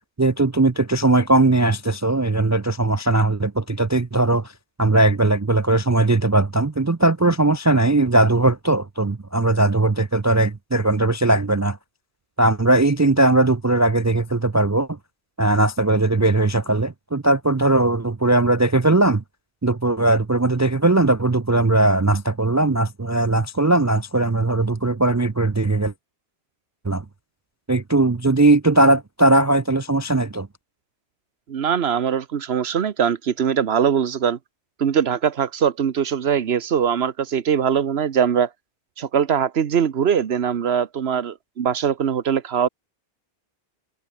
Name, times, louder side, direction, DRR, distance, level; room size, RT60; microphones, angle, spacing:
voice 1, 0.2-4.5 4.8-11.8 12.4-15.0 15.4-19.2 19.6-25.9 26.8-27.0 27.7-30.5, right 2 dB, 25° right, 0.4 m, -19 dB
voice 2, 31.5-34.4 34.8-38.5 39.0-42.7, right 8 dB, 90° right, 1.2 m, -21 dB
omnidirectional pair, 1.0 m